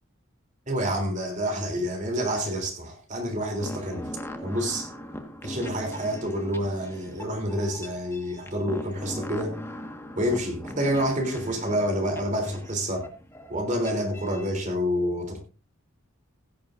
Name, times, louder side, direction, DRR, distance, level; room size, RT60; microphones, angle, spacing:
voice 1, 0.7-4.1 4.4-4.9 5.4-9.6 10.2-13.1 13.5-15.4, equal, 35° right, 3.4 m, -28 dB
sound 1, 3.6-14.5, left 1 dB, 10° left, 1.6 m, -40 dB
16.5 x 12.0 x 2.6 m
head